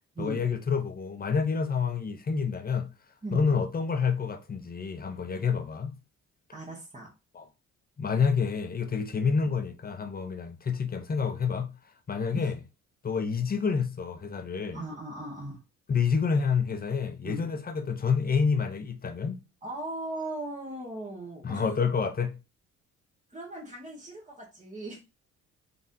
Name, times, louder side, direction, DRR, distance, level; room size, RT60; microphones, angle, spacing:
voice 1, 0.2-2.9 3.3-5.9 7.4-7.5 8.0-11.7 12.1-12.5 13.0-14.8 15.9-19.4 21.4-22.3, left 5 dB, 30° left, 0.7 m, -28 dB
voice 2, 6.5-7.1 12.3-12.5 14.7-15.6 17.2-17.4 19.6-21.8 23.3-25.0, right 2 dB, 25° right, 1.6 m, -38 dB
3.8 x 3.8 x 2.8 m
cardioid pair, 90°, 30 cm